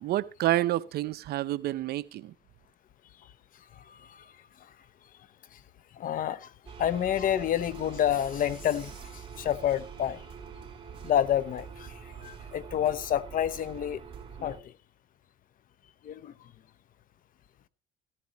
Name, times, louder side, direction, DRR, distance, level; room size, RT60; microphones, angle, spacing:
voice 1, 0.0-2.3, right 14 dB, 70° right, 0.7 m, -29 dB
voice 2, 3.8-4.3 5.5-5.6 5.9-6.5 6.8-10.2 11.0-11.9 12.2-14.0 14.4-14.7 16.0-16.3, left 10 dB, 55° left, 0.8 m, -29 dB
sound 1, 6.7-14.6, right 6 dB, 30° right, 4.0 m, -45 dB
15.5 x 14.0 x 3.0 m
cardioid pair, 110°, 17 cm